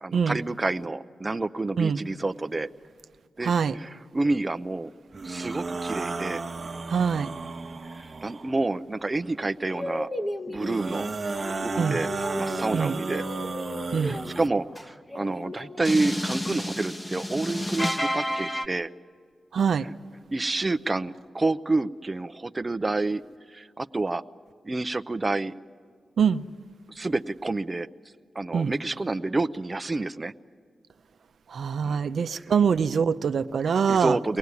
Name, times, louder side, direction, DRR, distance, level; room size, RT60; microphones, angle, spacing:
voice 1, 0.0-2.7 3.4-4.9 5.2-6.4 7.9-10.1 10.5-11.1 11.6-12.1 12.4-13.3 13.9-18.9 19.8-19.9 20.3-23.2 23.5-24.2 24.6-25.5 26.9-27.9 28.3-30.3 31.8-32.0 32.3-32.5 33.7-34.4, right 2 dB, 30° right, 0.6 m, -29 dB
sound 1, 5.1-8.5 10.5-14.5, right 3 dB, 45° right, 1.2 m, -33 dB
voice 2, 6.9-7.3 11.8-12.0 12.7-12.9 13.9-14.2 19.5-19.9 26.2-26.4 28.5-28.7 31.5-34.2, right 6 dB, 75° right, 0.7 m, -24 dB
sound 2, 9.6-10.8 11.3-18.7, left 1 dB, 15° left, 1.3 m, -32 dB
23.5 x 18.5 x 9.7 m
cardioid pair, 60°, 0 cm